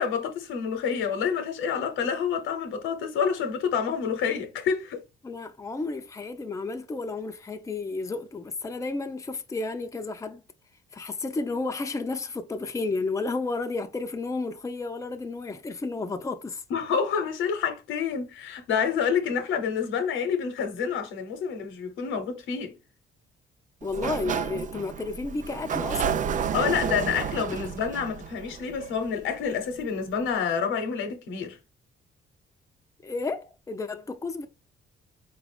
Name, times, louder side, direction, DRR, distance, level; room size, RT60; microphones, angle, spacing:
voice 1, 0.0-5.0 16.7-22.7 26.5-31.6, left 6 dB, 85° left, 0.9 m, -28 dB
voice 2, 5.2-10.4 10.9-16.6 23.8-26.2 33.0-34.5, left 3 dB, 15° left, 0.5 m, -32 dB
Sliding door, 23.8-29.5, right 7 dB, 40° right, 0.4 m, -31 dB
4.1 x 2.5 x 3.3 m
cardioid pair, 90°, 20 cm